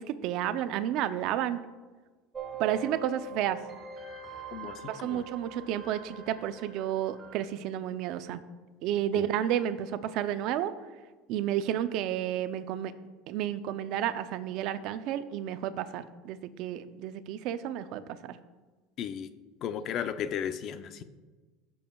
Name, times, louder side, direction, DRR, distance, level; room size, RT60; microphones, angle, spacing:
voice 1, 0.0-1.6 2.6-3.6 4.9-8.4 8.8-10.7 11.3-12.9 13.3-18.4, right 11 dB, 60° right, 12 dB, 0.5 m, -31 dB
sound 1, 2.3-7.4, right 4 dB, 25° right, 1.3 m, -43 dB
voice 2, 4.5-5.2 9.1-9.3 19.0-19.3 19.6-21.0, left 8 dB, 45° left, 11 dB, 0.5 m, -35 dB
15.0 x 7.0 x 2.3 m, 1.3 s
supercardioid pair, 130°, 0 cm